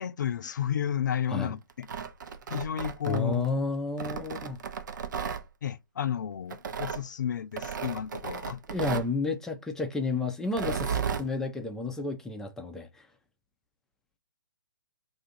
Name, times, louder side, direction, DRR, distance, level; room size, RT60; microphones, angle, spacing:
voice 1, 0.0-1.9 2.5-3.5 5.6-8.6, left 9 dB, 55° left, 0.4 m, -32 dB
Tearing, 1.7-3.5 4.0-5.4 6.5-7.0 7.6-9.1 10.4-11.3, right 6 dB, 60° right, 0.6 m, -34 dB
voice 2, 3.1-4.6 8.7-13.1, left 3 dB, 5° left, 0.6 m, -31 dB
2.8 x 2.4 x 4.2 m
figure-of-eight pair, 130°, 12 cm